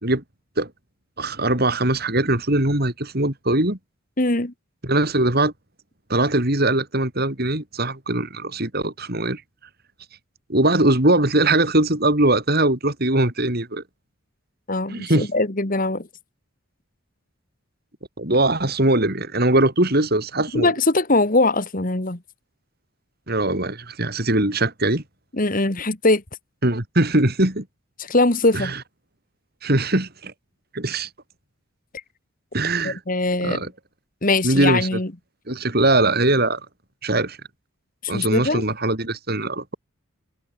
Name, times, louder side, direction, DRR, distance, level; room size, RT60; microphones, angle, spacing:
voice 1, 1.2-3.8 4.8-5.5 6.1-9.4 10.5-13.8 14.9-15.3 18.2-20.7 23.3-25.0 26.6-27.7 28.5-28.8 29.6-30.3 30.7-31.1 32.5-33.0 33.4-33.7 34.4-35.0 35.5-36.6 37.0-37.4 38.1-39.8, right 2 dB, 45° right, 3.5 m, -21 dB
voice 2, 4.2-4.5 14.7-16.1 20.5-22.2 25.3-26.2 28.0-28.7 32.8-33.6 34.2-35.1 38.0-38.6, left 2 dB, 40° left, 1.9 m, -21 dB
head